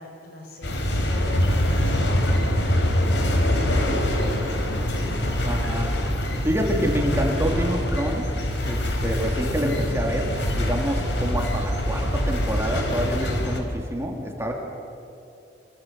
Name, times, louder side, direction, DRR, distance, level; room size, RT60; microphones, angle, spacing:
voice 1, 0.0-5.5, equal, 60° left, 2 dB, 5.2 m, -41 dB
sound 1, 0.6-13.6, left 1 dB, 85° left, 3.8 m, -24 dB
voice 2, 5.4-5.9 6.4-8.3 8.6-14.5, equal, 15° right, 0 dB, 3.2 m, -27 dB
26.5 x 24.5 x 7.8 m, 2.7 s
head